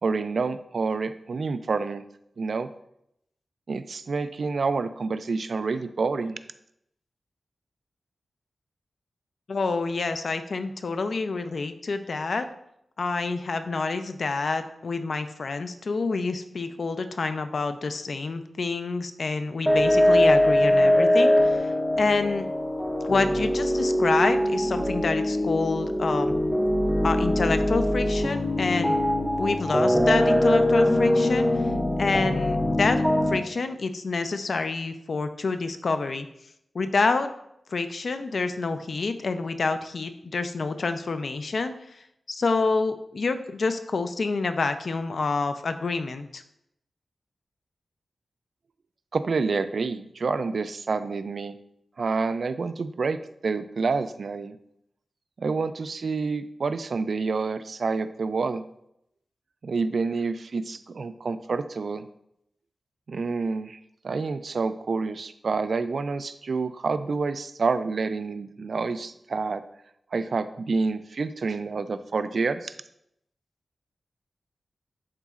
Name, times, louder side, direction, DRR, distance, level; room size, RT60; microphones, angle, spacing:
voice 1, 0.0-2.0 2.4-2.7 3.7-6.4 49.1-51.5 52.0-54.6 55.4-58.6 59.6-62.0 63.1-63.8 64.0-69.6 70.1-72.7, right 4 dB, 60° right, 12 dB, 0.4 m, -28 dB
voice 2, 9.5-12.5 13.0-21.7 22.0-22.5 23.0-26.3 27.0-29.0 29.4-31.5 32.0-36.3 36.7-37.3 37.7-46.4, left 4 dB, 55° left, 8 dB, 0.5 m, -27 dB
sound 1, 19.7-33.4, left 1 dB, ahead, 0.6 m, -22 dB
11.0 x 4.0 x 2.4 m, 0.77 s
wide cardioid pair, 135°, 0 cm